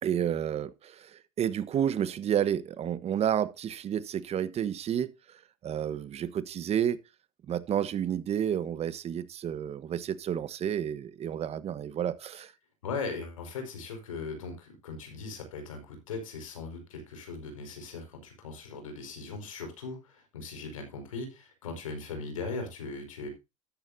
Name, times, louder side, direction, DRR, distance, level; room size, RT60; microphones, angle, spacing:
voice 1, 0.0-7.0 7.5-12.5, right 9 dB, 40° right, 1.2 m, -31 dB
voice 2, 12.8-23.3, left 4 dB, 90° left, 5.2 m, -39 dB
13.0 x 11.0 x 2.7 m
hypercardioid pair, 85°, 17 cm